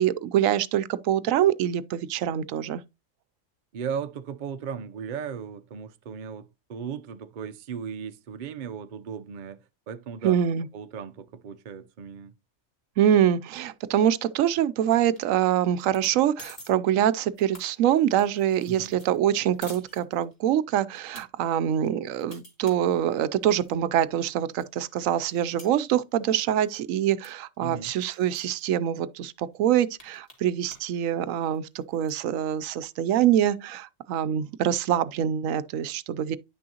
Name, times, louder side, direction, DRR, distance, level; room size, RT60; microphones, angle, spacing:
voice 1, 0.0-2.8 10.2-10.7 13.0-36.4, right 10 dB, 90° right, 1.0 m, -25 dB
voice 2, 3.7-10.4 10.7-12.3 18.7-19.0 27.6-27.9, right 7 dB, 45° right, 0.7 m, -36 dB
sound 1, 14.9-15.5 15.8-16.1 16.4-16.7 17.1-20.5 20.9-21.2 21.7-23.7 24.2-24.3 24.6-26.4 26.6-26.9 27.2-27.3 27.5-27.6 28.0-28.6 29.2-29.3 29.5-30.9 31.2-32.2, left 1 dB, 30° left, 3.1 m, -49 dB
10.0 x 6.1 x 2.8 m
omnidirectional pair, 1.3 m